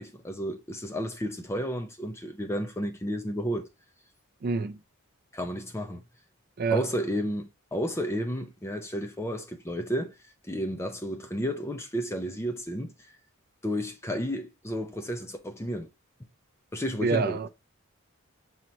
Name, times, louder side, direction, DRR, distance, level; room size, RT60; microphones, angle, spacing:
voice 1, 0.0-3.7 5.3-6.0 6.7-10.1 10.5-12.9 13.6-15.9 16.7-17.4, equal, 10° left, 0.5 m, -32 dB
voice 2, 4.4-4.8 6.6-6.9 17.0-17.5, right 4 dB, 45° right, 0.4 m, -27 dB
5.5 x 2.9 x 3.0 m
head